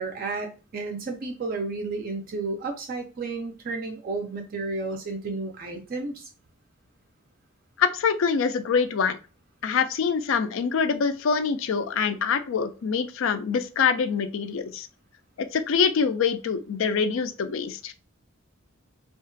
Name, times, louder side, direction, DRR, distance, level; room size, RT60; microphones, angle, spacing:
voice 1, 0.0-6.3, right 3 dB, 40° right, 4 dB, 0.4 m, -32 dB
voice 2, 7.8-9.2 9.6-14.9 15.4-17.9, left 6 dB, 65° left, 10 dB, 0.3 m, -25 dB
2.8 x 2.4 x 2.5 m, 0.34 s
head